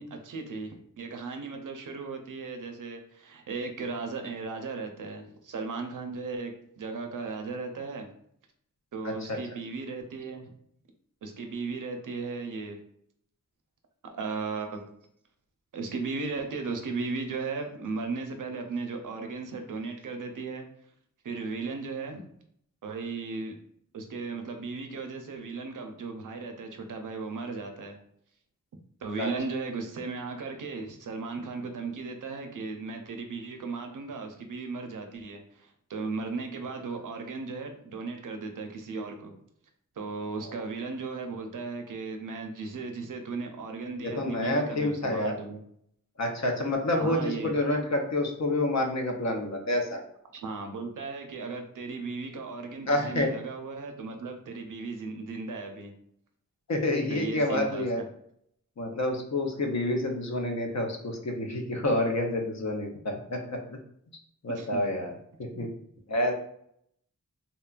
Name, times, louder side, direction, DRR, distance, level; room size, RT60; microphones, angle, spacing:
voice 1, 0.0-8.1 8.9-10.5 11.2-12.8 14.1-14.8 15.7-20.7 21.2-22.2 22.8-23.6 23.9-28.0 29.0-39.3 40.0-45.6 47.0-47.5 50.3-55.9 57.1-57.9 64.5-64.7 65.5-65.7, right 4 dB, 70° right, 5 dB, 0.5 m, -36 dB
voice 2, 9.0-9.4 29.2-29.3 40.4-40.6 44.0-45.4 46.2-50.0 52.9-53.3 56.7-58.0 58.8-63.8 64.4-65.7 66.1-66.3, left 1 dB, 55° left, 3 dB, 0.6 m, -28 dB
2.8 x 2.1 x 2.4 m, 0.69 s
cardioid pair, 40°, 33 cm